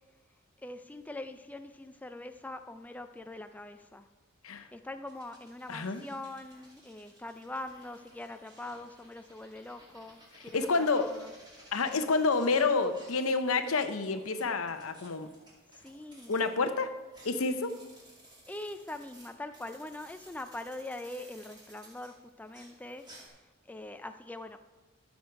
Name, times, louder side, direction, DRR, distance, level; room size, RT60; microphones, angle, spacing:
voice 1, 0.6-4.1 4.7-11.3 15.8-16.4 18.5-23.4 23.7-24.6, left 2 dB, 5° left, 8 dB, 0.4 m, -43 dB
sound 1, 5.1-16.6 17.0-23.3, right 1 dB, 20° right, 2.4 m, -57 dB
voice 2, 5.7-6.0 10.5-11.1 11.7-15.3 16.3-16.9 17.2-17.8, left 4 dB, 85° left, 9 dB, 0.8 m, -29 dB
14.0 x 6.4 x 4.6 m, 1.2 s
head